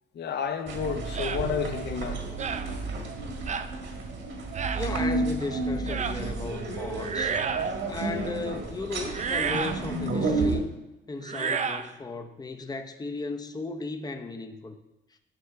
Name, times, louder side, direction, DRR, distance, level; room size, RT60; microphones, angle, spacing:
voice 1, 0.2-2.2, left 7 dB, 60° left, 0.9 m, -31 dB
sound 1, 0.7-10.6, right 3 dB, 65° right, 1.6 m, -31 dB
sound 2, 1.1-1.4 2.4-2.7 3.5-3.7 4.5-4.9 5.9-6.2 7.0-7.7 9.1-9.8 11.2-11.9, right 6 dB, 35° right, 0.5 m, -30 dB
voice 2, 4.7-7.4 7.9-10.6 11.1-14.8, left 3 dB, 20° left, 0.7 m, -35 dB
11.5 x 5.5 x 3.5 m
cardioid pair, 90°, 20 cm